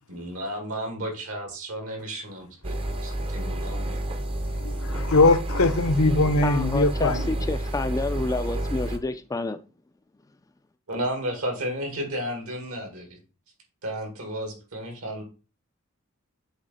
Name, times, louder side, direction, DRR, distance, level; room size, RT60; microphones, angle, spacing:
voice 1, 0.1-2.8 3.0-4.0 10.9-13.2 13.8-15.2, equal, 75° right, 2.1 m, -33 dB
sound 1, 2.6-9.0, right 1 dB, 25° right, 0.6 m, -30 dB
voice 2, 4.6-7.3, left 2 dB, 75° left, 0.8 m, -21 dB
voice 3, 6.4-9.6, left 2 dB, 15° left, 0.3 m, -29 dB
7.7 x 3.0 x 4.2 m
head